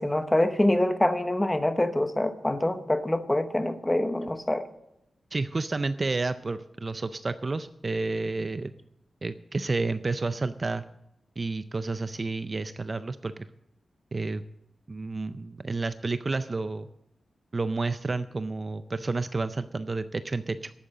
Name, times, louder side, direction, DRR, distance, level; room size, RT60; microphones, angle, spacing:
voice 1, 0.0-4.7, left 1 dB, 10° left, 9 dB, 0.9 m, -25 dB
voice 2, 5.3-8.7 9.2-10.8 11.4-13.5 14.1-14.4 14.9-16.9 17.5-20.7, right 3 dB, 30° right, 12 dB, 0.4 m, -30 dB
12.0 x 8.8 x 7.6 m, 0.82 s
wide cardioid pair, 165°, 0 cm